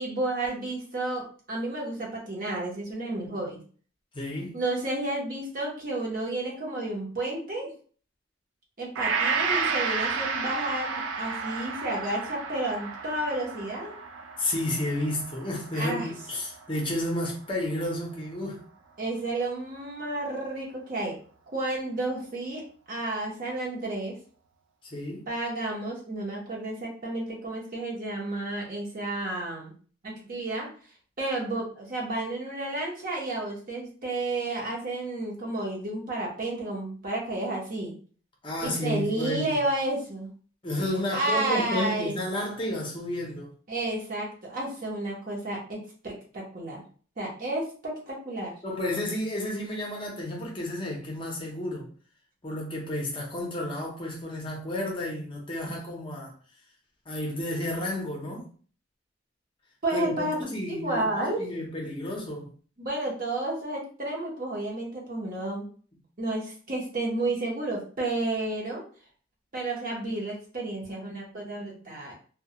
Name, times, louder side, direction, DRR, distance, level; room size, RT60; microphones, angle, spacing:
voice 1, 0.0-3.6 4.5-7.7 8.8-13.9 15.7-16.1 19.0-21.2 21.5-24.1 25.3-29.7 30.0-30.7 31.2-37.9 38.6-40.3 41.1-42.1 43.7-46.8 47.2-48.5 55.7-55.8 59.8-60.4 60.7-61.4 62.8-65.6 66.2-68.8 69.5-72.1, right 2 dB, 45° right, 0.8 m, -31 dB
voice 2, 4.1-4.6 14.4-18.6 24.8-25.3 38.4-39.5 40.6-43.5 48.6-51.9 52.4-56.3 57.1-58.5 59.9-61.1 61.4-62.5, left 1 dB, 25° left, 0.6 m, -31 dB
Gong, 8.9-17.3 17.7-17.8, right 5 dB, 85° right, 0.4 m, -32 dB
2.2 x 2.2 x 2.8 m
head